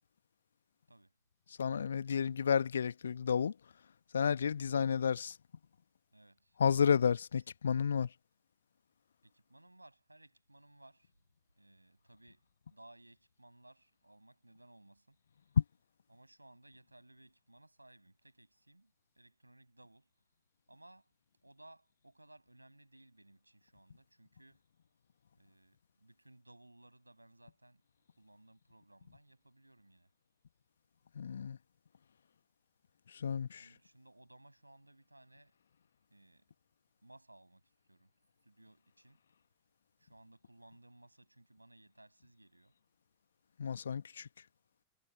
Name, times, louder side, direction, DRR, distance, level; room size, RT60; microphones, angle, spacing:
voice 1, 1.6-3.5 4.1-5.4 6.6-8.1 15.6-15.7 31.1-31.6 33.1-33.7 43.6-44.3, left 7 dB, 70° left, 1.6 m, -31 dB
voice 2, 6.1-6.6 9.2-11.1 11.6-15.2 16.1-20.1 20.7-21.1 21.4-24.6 25.3-27.8 28.2-30.1 33.5-35.5 36.1-36.5 37.0-37.6 37.9-38.1 38.4-39.2 40.0-42.7, right 1 dB, 85° right, 7.2 m, -61 dB
figure-of-eight pair, 90°, 0 cm